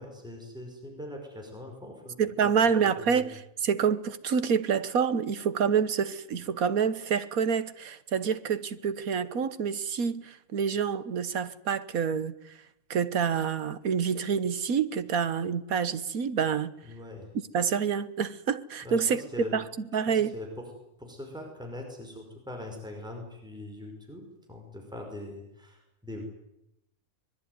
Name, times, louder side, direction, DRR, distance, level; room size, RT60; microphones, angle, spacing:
voice 1, 0.0-3.3 16.8-17.3 18.8-19.6 20.1-20.7 21.0-24.2 24.5-26.2, left 1 dB, 5° right, 5.4 m, -42 dB
voice 2, 2.2-12.3 12.9-16.7 17.5-19.2 19.5-19.6 19.9-20.3, right 7 dB, 80° right, 1.6 m, -27 dB
24.5 x 21.5 x 9.5 m
omnidirectional pair, 1.5 m